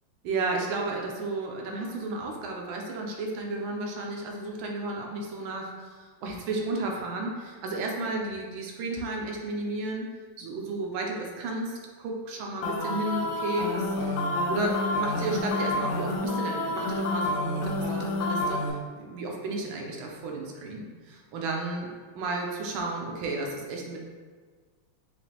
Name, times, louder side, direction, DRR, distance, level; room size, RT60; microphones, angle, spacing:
voice 1, 0.2-5.7 6.2-10.1 10.4-14.2 14.5-21.9 22.1-24.0, right 2 dB, 80° right, 0 dB, 1.4 m, -33 dB
sound 1, 12.6-18.7, left 2 dB, 80° left, 1.4 m, -29 dB
4.9 x 2.5 x 2.8 m, 1.5 s
omnidirectional pair, 2.3 m